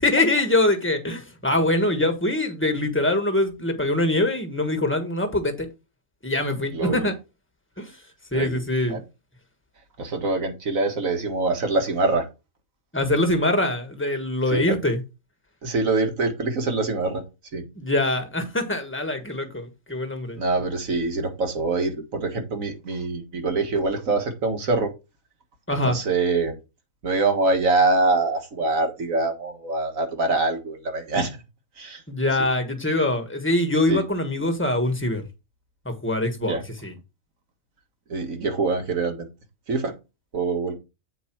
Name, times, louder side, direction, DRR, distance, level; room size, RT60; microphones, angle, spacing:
voice 1, 0.0-5.7 6.2-7.1 7.8-7.9 8.3-9.0 12.9-15.0 17.8-20.4 25.7-26.0 32.1-35.2 35.8-36.9, left 1 dB, 10° left, 1.4 m, -23 dB
voice 2, 6.7-7.1 8.3-8.6 8.9-9.0 10.0-12.3 14.5-14.8 15.6-17.2 17.5-17.6 20.4-24.9 25.7-26.6 27.0-31.4 31.8-32.0 33.9-34.0 36.5-36.6 38.1-39.3 39.7-39.9 40.3-40.7, right 3 dB, 60° right, 2.0 m, -24 dB
8.4 x 4.8 x 4.6 m
omnidirectional pair, 1.6 m